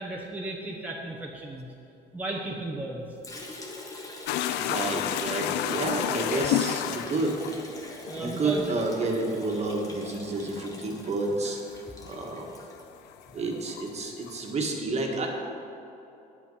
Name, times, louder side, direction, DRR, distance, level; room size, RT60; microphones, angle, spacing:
voice 1, 0.0-1.7 2.1-3.1 8.0-8.7, right 2 dB, 10° right, -3 dB, 1.0 m, -35 dB
Liquid, 3.2-13.3, left 2 dB, 20° left, 1.4 m, -44 dB
sound 1, 4.3-12.8 13.1-14.5, left 12 dB, 85° left, 0.4 m, -32 dB
voice 2, 4.6-7.4 8.1-11.6 12.1-12.5 13.3-15.3, right 2 dB, 40° right, 0 dB, 1.6 m, -30 dB
8.5 x 8.2 x 5.5 m, 2.8 s
cardioid pair, 110°, 17 cm